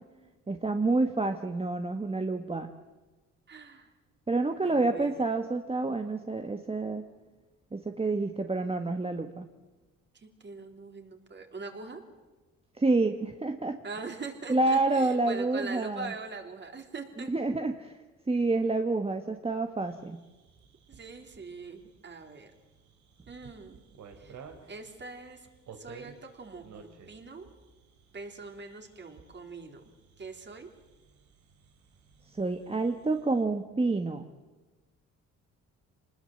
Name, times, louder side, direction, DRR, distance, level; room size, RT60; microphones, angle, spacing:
voice 1, 0.5-2.7 4.3-7.1 7.7-9.5 12.8-13.8 14.5-16.1 17.3-18.0 18.3-20.2 32.3-34.3, right 3 dB, 20° right, 6 dB, 1.3 m, -28 dB
voice 2, 3.5-3.9 4.6-5.3 10.1-12.0 13.8-17.3 20.9-22.5 23.3-23.8 24.2-24.4 24.7-25.5 25.7-27.5 28.1-29.8 30.2-30.7, right 4 dB, 35° right, 4 dB, 3.6 m, -43 dB
sound 1, 19.8-33.4, right 6 dB, 70° right, 3.4 m, -54 dB
25.5 x 20.0 x 7.8 m, 1.2 s
cardioid pair, 90°, 30 cm